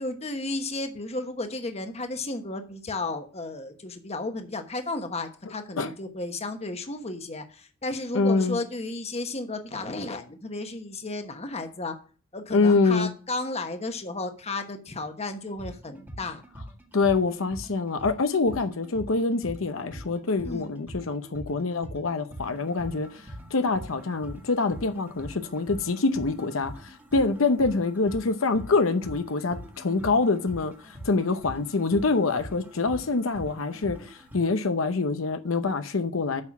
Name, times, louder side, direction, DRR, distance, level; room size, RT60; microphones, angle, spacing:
voice 1, 0.0-11.9 12.3-16.4 20.4-20.7, left 2 dB, 30° left, 1.2 m, -33 dB
voice 2, 8.1-8.6 12.5-13.1 16.9-23.2 23.5-36.4, left 3 dB, 80° left, 0.8 m, -25 dB
sound 1, 15.5-34.4, equal, 10° right, 1.6 m, -43 dB
8.8 x 5.9 x 6.0 m
head